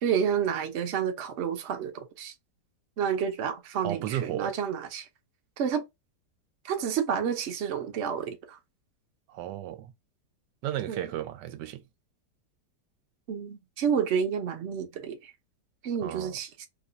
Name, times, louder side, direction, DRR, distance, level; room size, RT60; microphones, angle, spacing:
voice 1, 0.0-2.3 3.0-5.1 5.6-5.8 6.6-8.6 10.9-11.1 13.3-15.3 15.8-16.7, right 7 dB, 55° right, 0.8 m, -30 dB
voice 2, 3.8-4.6 9.3-9.9 10.6-11.8 16.0-16.4, right 12 dB, 80° right, 1.2 m, -34 dB
2.9 x 2.3 x 3.8 m
omnidirectional pair, 1.8 m